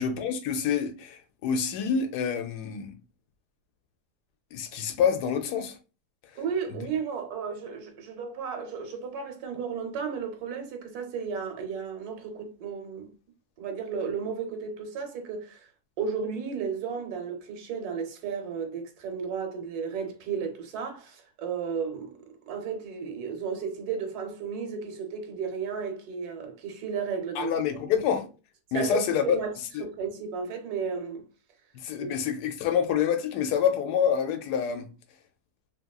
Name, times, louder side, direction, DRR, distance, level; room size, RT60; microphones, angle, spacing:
voice 1, 0.0-3.0 4.5-5.7 27.4-28.2 28.7-29.4 31.8-34.9, left 7 dB, 85° left, 1.1 m, -27 dB
voice 2, 6.4-13.1 13.6-15.7 16.0-22.2 22.5-27.6 28.7-29.5 29.8-31.3 32.0-32.1, right 6 dB, 75° right, 1.2 m, -33 dB
2.9 x 2.8 x 2.2 m
omnidirectional pair, 1.6 m